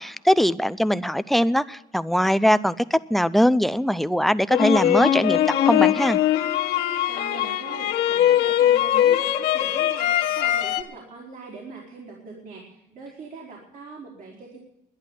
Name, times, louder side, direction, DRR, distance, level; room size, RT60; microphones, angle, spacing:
voice 1, 0.0-6.2, equal, ahead, 0.5 m, -21 dB
sound 1, 4.5-10.8, left 11 dB, 75° left, 1.4 m, -21 dB
voice 2, 7.1-14.6, right 4 dB, 55° right, 4.1 m, -41 dB
11.5 x 10.5 x 9.7 m
cardioid pair, 110°, 17 cm